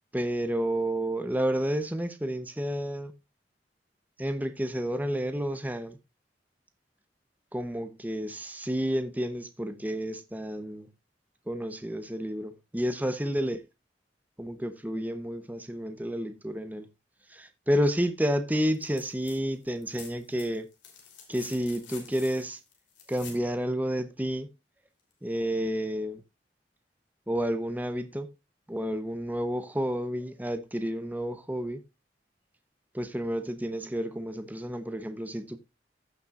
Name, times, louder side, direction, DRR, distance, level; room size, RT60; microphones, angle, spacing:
voice 1, 0.1-3.1 4.2-6.0 7.5-10.9 11.5-13.6 14.4-16.9 17.3-20.7 21.3-22.6 23.1-24.5 25.2-26.2 27.3-28.3 28.7-31.8 32.9-35.6, equal, 10° right, 0.8 m, -30 dB
sound 1, 18.7-19.4 19.6-23.5 25.1-25.2, left 6 dB, 90° left, 3.4 m, -48 dB
15.5 x 6.8 x 2.4 m
head